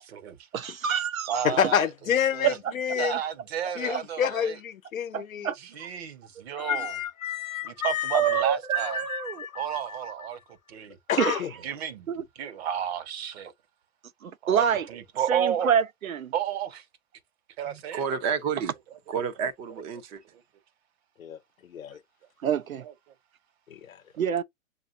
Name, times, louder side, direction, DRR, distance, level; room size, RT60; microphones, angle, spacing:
voice 1, 0.0-0.4 1.3-1.9 2.3-2.6 3.0-4.6 5.6-7.0 7.6-9.0 9.5-10.4 10.7-11.0 11.6-12.1 12.4-13.5 14.4-15.7 16.3-16.8 17.6-18.0 22.8-22.9, right 9 dB, 50° right, 1.0 m, -32 dB
voice 2, 0.5-1.3 2.4-2.5 3.1-3.2 5.1-5.9 6.6-6.7 8.1-9.5 11.2-11.4 12.1-12.2 14.2-14.9 15.3-16.3 22.4-22.8 24.2-24.4, right 8 dB, 85° right, 0.7 m, -27 dB
voice 3, 1.4-3.2 3.8-5.5 6.6-8.4 8.7-10.1 11.1-11.5 21.2-22.0 23.7-24.0, left 9 dB, 80° left, 0.8 m, -29 dB
voice 4, 17.7-18.7 19.1-20.2, right 6 dB, 15° right, 0.5 m, -30 dB
7.2 x 2.6 x 2.5 m
hypercardioid pair, 130°, 40 cm